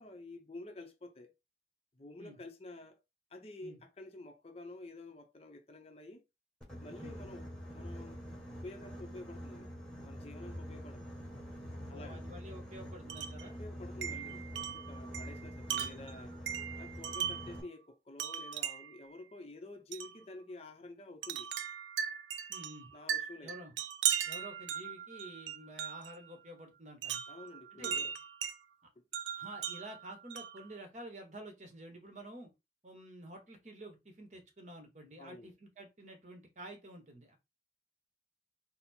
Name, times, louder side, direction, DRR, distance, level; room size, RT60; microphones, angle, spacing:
voice 1, 0.0-1.3 1.9-3.0 3.3-6.2 6.8-8.2 8.5-9.7 10.0-11.2 11.9-12.3 13.5-16.4 16.8-21.5 22.9-23.5 27.3-28.1 29.0-29.1 35.2-35.5, left 2 dB, 35° left, 0.6 m, -50 dB
Boat Water vehicle, 6.6-17.6, equal, 5° left, 1.3 m, -46 dB
voice 2, 11.9-13.6 17.2-17.4 22.5-22.9 23.4-23.7 24.3-27.2 27.7-28.1 29.4-32.5 32.8-37.4, right 1 dB, 40° right, 1.1 m, -50 dB
Wind chime, 13.1-13.5 14.0-17.6 18.2-19.0 19.9-20.2 21.2-26.2 27.0-28.6 29.1-30.7, right 9 dB, 85° right, 0.4 m, -38 dB
4.1 x 2.0 x 4.2 m
head